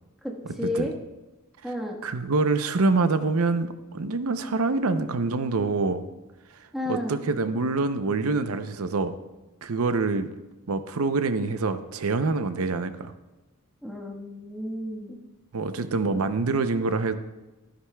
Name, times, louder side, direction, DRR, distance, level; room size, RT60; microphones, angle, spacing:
voice 1, 0.2-0.9 1.6-2.0 6.7-7.1 13.8-15.2, left 1 dB, ahead, -2 dB, 1.3 m, -32 dB
voice 2, 2.0-6.0 6.9-9.1 9.6-10.3 10.7-13.1 15.5-17.2, right 3 dB, 75° right, 10 dB, 0.6 m, -25 dB
13.0 x 11.0 x 2.3 m, 1.1 s
head